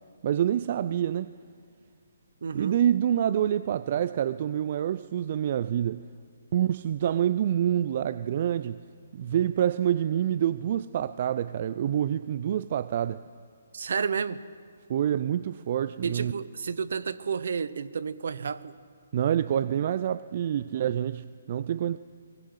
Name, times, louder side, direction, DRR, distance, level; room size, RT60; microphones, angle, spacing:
voice 1, 0.2-1.3 2.5-6.0 6.5-8.8 9.1-13.2 14.9-16.3 19.1-22.0, right 10 dB, 45° right, 0.5 m, -27 dB
voice 2, 2.4-2.8 13.7-14.4 16.0-18.8, right 6 dB, 65° right, 1.0 m, -31 dB
23.0 x 20.0 x 8.1 m
hypercardioid pair, 145°, 0 cm